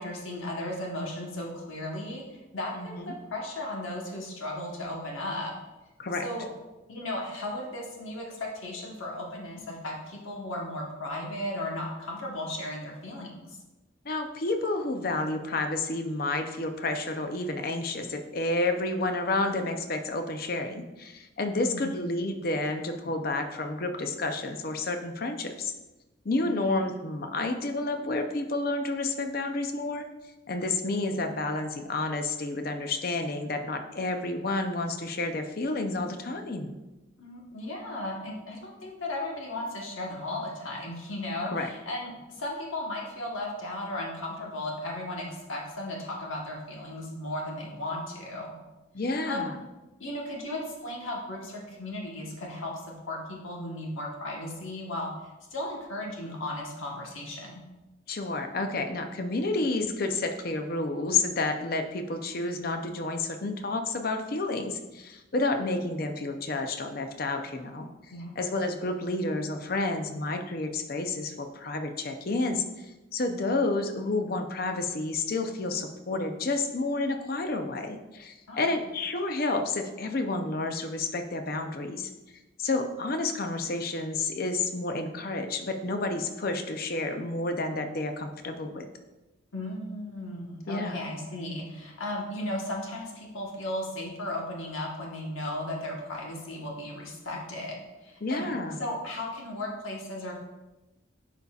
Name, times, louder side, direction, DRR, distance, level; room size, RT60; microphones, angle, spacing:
voice 1, 0.0-5.5 6.2-6.5 6.9-13.6 21.5-22.0 26.4-26.9 37.2-48.5 49.3-49.5 50.0-55.1 55.5-57.6 68.1-68.5 78.5-78.8 89.5-98.5 98.8-100.3, left 1 dB, 85° left, -2 dB, 1.3 m, -36 dB
voice 2, 2.7-3.1 6.0-6.2 14.0-25.7 26.2-30.0 30.5-36.7 41.4-41.7 48.9-49.6 58.1-67.9 68.4-82.1 82.6-88.9 90.7-91.0 98.2-98.8, left 2 dB, 45° left, 6 dB, 0.5 m, -30 dB
11.0 x 4.1 x 2.4 m, 1.1 s
head